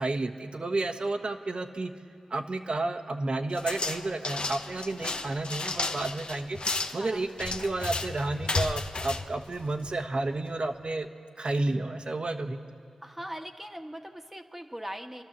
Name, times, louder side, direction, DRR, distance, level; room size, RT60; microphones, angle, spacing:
voice 1, 0.0-1.9 2.3-6.6 6.9-11.1 11.4-12.6, right 2 dB, 55° right, 6 dB, 1.3 m, -31 dB
shopping cart, 3.5-10.1, left 3 dB, 55° left, 0.9 m, -33 dB
voice 2, 13.0-15.2, equal, 10° right, 4 dB, 1.4 m, -40 dB
29.5 x 12.0 x 7.3 m, 2.4 s
cardioid pair, 45°, 2 cm